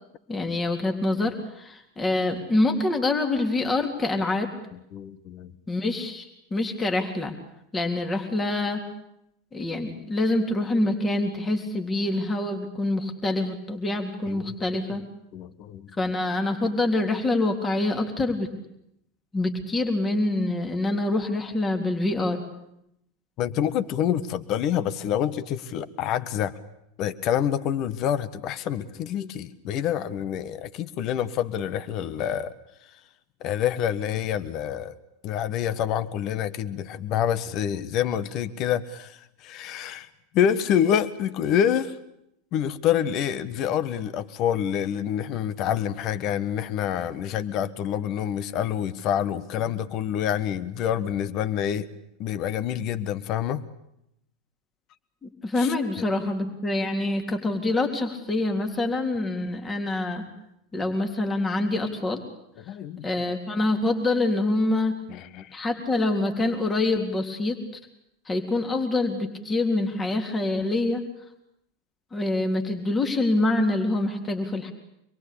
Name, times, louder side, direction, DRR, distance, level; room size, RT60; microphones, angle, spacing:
voice 1, 0.3-4.5 5.7-6.3 6.5-7.3 7.7-8.8 9.5-15.0 16.0-18.5 19.3-22.4 55.2-60.3 60.7-62.2 62.7-62.8 63.0-64.9 65.5-67.6 68.3-71.1 72.1-74.7, left 2 dB, 20° left, 4 dB, 3.8 m, -26 dB
voice 2, 4.9-5.5 14.3-14.6 15.3-15.9 23.4-26.6 27.0-32.5 33.4-34.9 35.2-40.1 40.3-42.0 42.5-51.9 52.2-53.6 55.6-56.1 62.6-63.1 65.1-65.6, left 9 dB, 45° left, 12 dB, 1.4 m, -27 dB
26.0 x 22.5 x 8.6 m, 0.79 s
hypercardioid pair, 90°, 0 cm